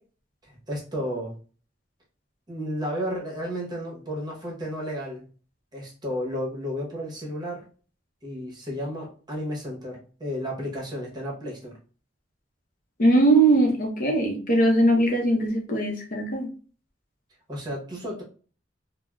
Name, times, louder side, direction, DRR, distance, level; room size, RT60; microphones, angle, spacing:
voice 1, 0.5-1.3 2.5-5.2 5.7-7.6 8.2-11.8 17.5-18.2, equal, 25° right, -3 dB, 0.9 m, -32 dB
voice 2, 13.0-16.5, right 2 dB, 50° left, 1 dB, 0.6 m, -20 dB
3.4 x 2.0 x 2.3 m, 0.39 s
head